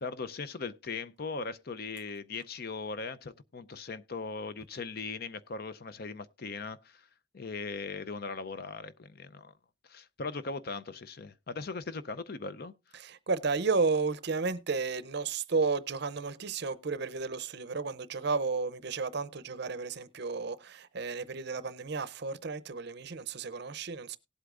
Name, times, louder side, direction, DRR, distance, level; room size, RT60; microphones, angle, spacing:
voice 1, 0.0-7.1 7.3-9.5 9.9-12.7, left 4 dB, 45° left, 0.6 m, -39 dB
voice 2, 12.9-24.2, right 4 dB, 50° right, 0.6 m, -32 dB
18.0 x 8.1 x 2.5 m
head